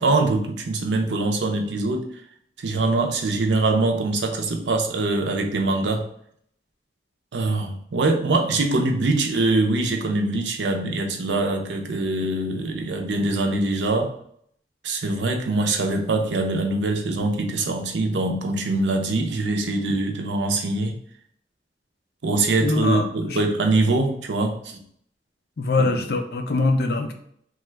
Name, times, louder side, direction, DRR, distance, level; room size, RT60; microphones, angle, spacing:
voice 1, 0.0-2.1 2.6-6.0 7.3-14.2 14.8-21.0 22.2-24.8 25.8-25.9, right 2 dB, 85° right, 3 dB, 0.5 m, -23 dB
voice 2, 22.6-23.4 25.6-27.1, left 2 dB, 60° left, 5 dB, 0.4 m, -23 dB
3.0 x 2.3 x 3.2 m, 0.66 s
head